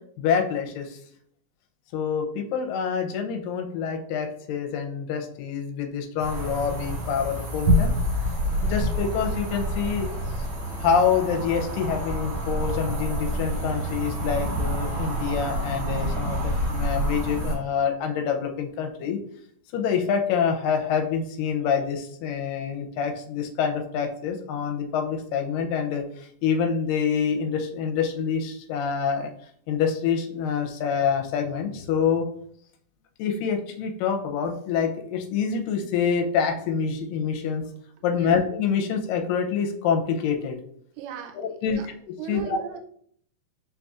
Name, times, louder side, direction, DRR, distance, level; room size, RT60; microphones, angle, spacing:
voice 1, 0.2-1.0 1.9-7.9 8.2-8.3 8.6-10.1 10.4-10.5 10.8-19.2 19.7-29.3 29.7-32.3 33.2-37.7 38.0-40.6 41.4-41.8 42.1-42.6, left 7 dB, 80° left, 4 dB, 2.3 m, -26 dB
sound 1, 6.2-17.6, equal, 40° right, 2.3 m, -27 dB
voice 2, 41.0-41.9 42.2-42.8, right 9 dB, 80° right, 4 dB, 2.1 m, -37 dB
5.0 x 4.0 x 2.4 m, 0.63 s
omnidirectional pair, 4.0 m